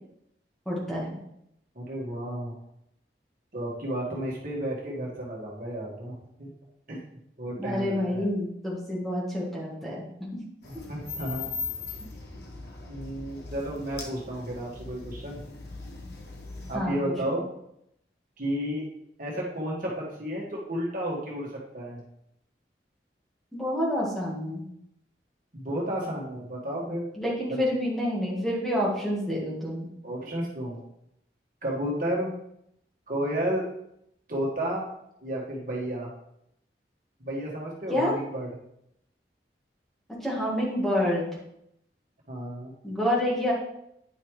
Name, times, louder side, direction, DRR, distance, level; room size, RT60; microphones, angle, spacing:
voice 1, 0.7-1.2 7.6-10.3 16.7-17.1 23.5-24.6 27.2-29.9 37.9-38.2 40.2-41.3 42.8-43.5, left 1 dB, ahead, -5 dB, 1.7 m, -28 dB
voice 2, 1.8-2.5 3.5-6.5 6.9-7.0 7.4-8.3 10.6-11.5 12.9-15.4 16.7-17.5 18.4-18.9 19.2-22.0 25.5-27.1 27.5-27.6 30.0-30.8 31.6-32.3 33.1-33.6 34.3-34.9 35.2-36.1 37.2-38.5 42.3-42.7, right 1 dB, 50° right, -4 dB, 2.0 m, -32 dB
sound 1, 10.6-16.8, left 4 dB, 65° left, 1.2 m, -39 dB
9.6 x 5.6 x 3.2 m, 0.77 s
head